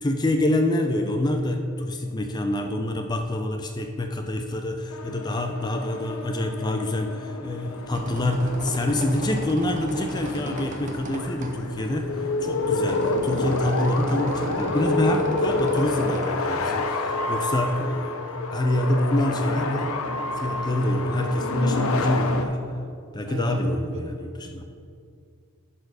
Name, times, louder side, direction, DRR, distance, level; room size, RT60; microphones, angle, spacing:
voice 1, 0.0-18.2 18.5-20.0 20.3-22.6 23.1-24.2 24.5-24.6, left 1 dB, 20° left, 5 dB, 0.4 m, -26 dB
sound 1, 4.9-22.4, left 3 dB, 70° left, 0.6 m, -29 dB
sound 2, 7.6-16.3, right 1 dB, 35° right, 0.6 m, -35 dB
voice 2, 23.3-24.1 24.4-24.6, equal, 55° right, 2 dB, 1.1 m, -36 dB
11.5 x 4.4 x 4.8 m, 2.3 s
head